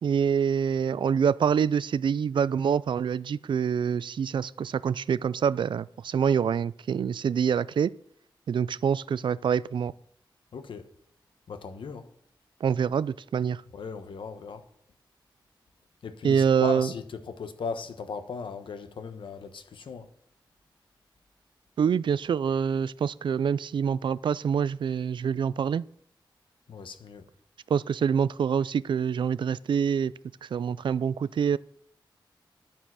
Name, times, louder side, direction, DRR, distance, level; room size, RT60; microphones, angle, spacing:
voice 1, 0.0-7.9 8.5-9.9 12.6-13.6 16.2-16.9 21.8-25.8 27.7-30.1 30.4-31.6, right 7 dB, 70° right, 0.4 m, -26 dB
voice 2, 10.5-10.9 11.5-12.0 13.7-14.6 16.0-20.1 26.7-27.2, left 5 dB, 80° left, 1.2 m, -37 dB
11.5 x 8.9 x 6.3 m
wide cardioid pair, 155°, 8 cm